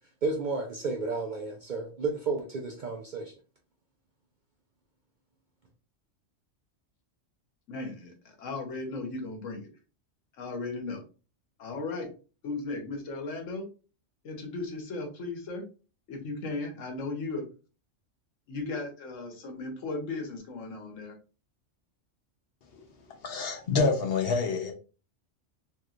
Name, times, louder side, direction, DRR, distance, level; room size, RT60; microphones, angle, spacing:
voice 1, 0.2-3.3, right 4 dB, 60° right, 1 dB, 0.5 m, -32 dB
voice 2, 7.7-9.7 10.4-11.0 11.6-12.1 12.4-13.7 14.2-15.6 16.1-17.4 18.5-21.1, left 3 dB, 80° left, 4 dB, 1.3 m, -36 dB
voice 3, 23.2-24.7, left 4 dB, 55° left, 3 dB, 0.9 m, -27 dB
3.1 x 3.1 x 2.4 m, 0.34 s
omnidirectional pair, 1.3 m